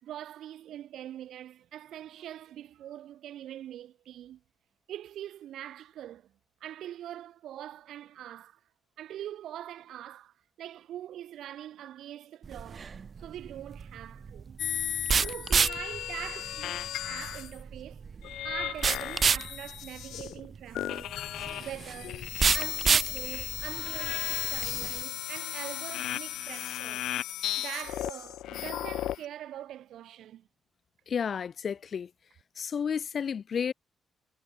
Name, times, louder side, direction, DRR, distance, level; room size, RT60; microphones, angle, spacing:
voice 1, 0.0-4.4 4.9-6.3 6.6-8.6 9.0-12.9 13.2-14.6 15.2-18.0 18.4-21.2 21.6-22.3 22.5-27.1 27.6-30.5, right 11 dB, 75° right, 5.0 m, -43 dB
sound 1, 12.4-25.0, right 6 dB, 35° right, 1.0 m, -30 dB
sound 2, 14.6-17.6 18.2-20.5 20.8-29.3, left 13 dB, 90° left, 1.6 m, -35 dB
voice 2, 31.1-32.1 32.6-33.7, left 7 dB, 45° left, 0.6 m, -31 dB
cardioid pair, 140°, 0 cm